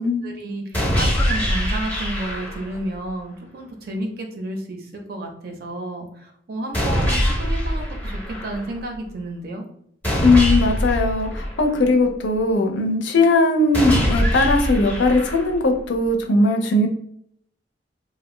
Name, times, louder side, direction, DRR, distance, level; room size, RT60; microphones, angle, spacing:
voice 1, 0.2-9.7, right 1 dB, 55° right, 3 dB, 0.5 m, -31 dB
sound 1, 0.7-2.8 6.7-8.8 10.0-12.1 13.7-15.8, equal, 10° left, 0.6 m, -23 dB
voice 2, 10.2-16.9, left 2 dB, 80° left, 5 dB, 0.5 m, -19 dB
2.5 x 2.0 x 3.1 m, 0.68 s
head